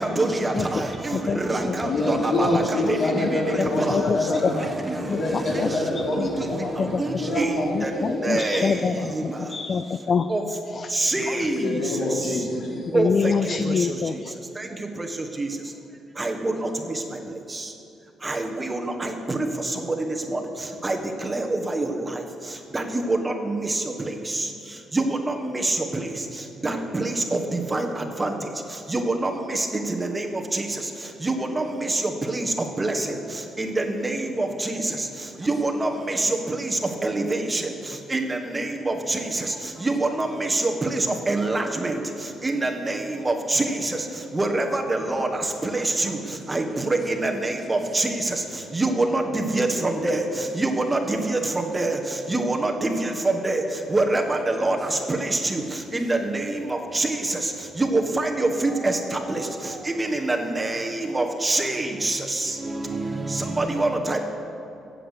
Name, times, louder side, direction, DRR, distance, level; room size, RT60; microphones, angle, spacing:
voice 1, 0.0-4.0 4.9-5.0 5.5-5.6 6.1-6.3 7.0-7.9 8.2-8.7 10.3-10.4 10.9-11.7 12.9-13.3 15.4-15.5 16.2-16.7 18.2-19.4 20.3-20.4 20.8-21.0 21.2-22.0 22.7-23.8 24.9-26.0 26.6-27.1 27.7-27.9 28.2-28.3 28.9-29.7 30.0-30.2 30.5-30.6 31.2-32.0 32.3-32.4 32.8-32.9 33.6-34.7 35.4-37.6 38.1-39.2 39.8-42.0 42.4-43.6 44.3-45.3 45.6-46.2 46.5-48.3 48.7-49.7 50.0-50.2 50.6-51.4 51.7-52.0 52.3-53.6 53.9-55.6 55.9-56.4 56.7-57.4 57.8-58.5 58.8-59.0 59.3-59.4 60.0-62.4 62.8-62.9 63.3-64.2, right 2 dB, 20° right, 3 dB, 1.5 m, -25 dB
voice 2, 1.1-1.8 2.8-2.9 3.2-3.3 3.6-4.5 5.1-5.7 6.0-7.0 7.7-10.3 10.7-11.5 12.9-14.4, left 5 dB, 45° left, 11 dB, 0.4 m, -27 dB
voice 3, 1.8-4.7 5.0-6.8 7.2-8.7 9.0-9.1 11.5-12.9, left 2 dB, 60° left, -2 dB, 3.3 m, -26 dB
16.0 x 7.9 x 6.7 m, 2.8 s
cardioid pair, 90°, 0 cm